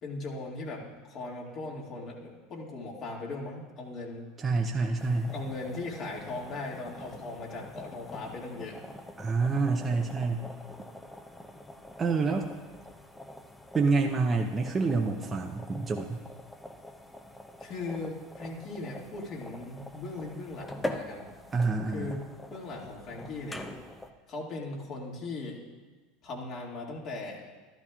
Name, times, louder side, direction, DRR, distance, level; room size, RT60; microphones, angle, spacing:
voice 1, 0.0-4.2 5.3-8.8 17.6-21.3 21.9-23.6 24.3-25.6 26.2-27.6, left 3 dB, 50° left, -2 dB, 2.2 m, -38 dB
voice 2, 4.4-5.3 9.2-10.5 12.0-12.5 13.7-16.2 21.5-22.2, right 4 dB, 25° right, 2 dB, 0.7 m, -27 dB
sound 1, 5.0-24.1, left 1 dB, 10° left, 0.7 m, -44 dB
13.0 x 12.5 x 2.4 m, 1.3 s
hypercardioid pair, 85°, 0 cm